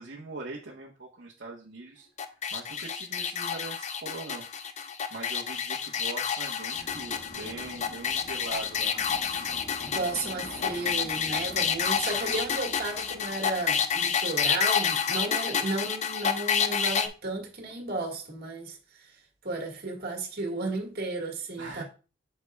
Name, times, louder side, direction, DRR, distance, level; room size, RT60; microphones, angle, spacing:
voice 1, 0.0-4.4 4.7-9.0 21.6-21.8, right 2 dB, 75° right, 1.1 m, -41 dB
sound 1, 2.2-17.1, left 7 dB, 40° left, 0.5 m, -29 dB
sound 2, 6.7-14.1, left 1 dB, 90° left, 2.0 m, -47 dB
voice 2, 9.8-19.1 19.4-21.8, right 2 dB, 60° right, 1.8 m, -34 dB
8.3 x 5.9 x 2.3 m
head